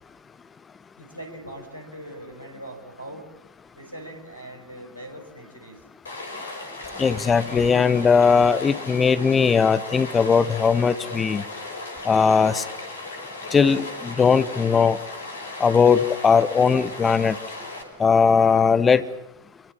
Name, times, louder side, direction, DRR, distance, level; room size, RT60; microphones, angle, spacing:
voice 1, 1.0-3.3 3.8-5.8, right 1 dB, 90° left, 5 dB, 6.3 m, -41 dB
Stream, 6.1-17.8, left 2 dB, 70° left, 5.7 m, -36 dB
voice 2, 7.0-11.4 12.0-12.6 13.5-15.0 15.6-17.4 18.0-19.0, left 5 dB, 20° left, 13 dB, 1.1 m, -19 dB
27.0 x 24.0 x 7.5 m, 0.83 s
figure-of-eight pair, 90°, 0 cm